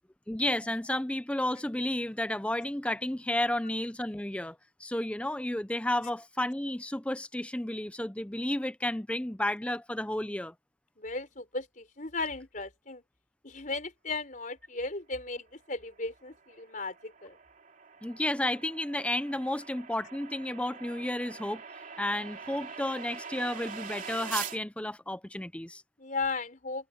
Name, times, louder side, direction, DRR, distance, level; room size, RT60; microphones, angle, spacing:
voice 1, 0.3-10.5 18.0-21.6 22.0-25.8, left 1 dB, 5° left, 0.5 m, -32 dB
voice 2, 11.0-13.0 13.4-17.4 26.0-26.9, left 3 dB, 40° left, 4.6 m, -36 dB
sound 1, 15.9-24.6, right 7 dB, 45° right, 3.2 m, -43 dB
head